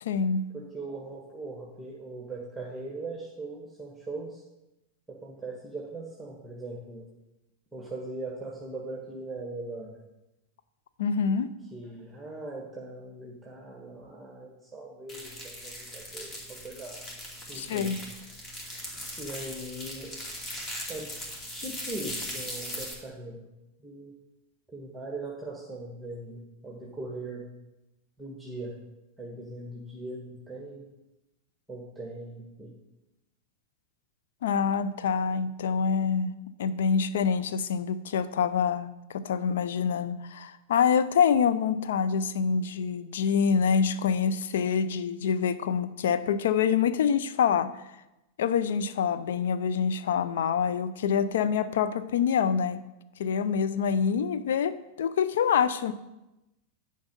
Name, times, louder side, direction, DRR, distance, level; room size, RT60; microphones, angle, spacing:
voice 1, 0.0-0.4 11.0-11.5 17.5-18.0 34.4-36.3 36.6-47.7 48.4-52.8 53.2-55.9, left 7 dB, 60° left, 13 dB, 0.5 m, -26 dB
voice 2, 0.5-4.4 5.1-7.0 7.7-9.9 11.7-16.4 16.6-16.9 17.5-17.9 19.2-20.1 20.9-21.2 21.5-23.4 23.8-24.1 24.7-27.4 28.2-28.7 29.2-30.9 31.7-32.7, right 2 dB, 5° right, -2 dB, 1.5 m, -40 dB
sound 1, 15.1-22.9, equal, 20° left, 2.4 m, -39 dB
10.5 x 5.3 x 5.2 m, 0.95 s
figure-of-eight pair, 90°, 0 cm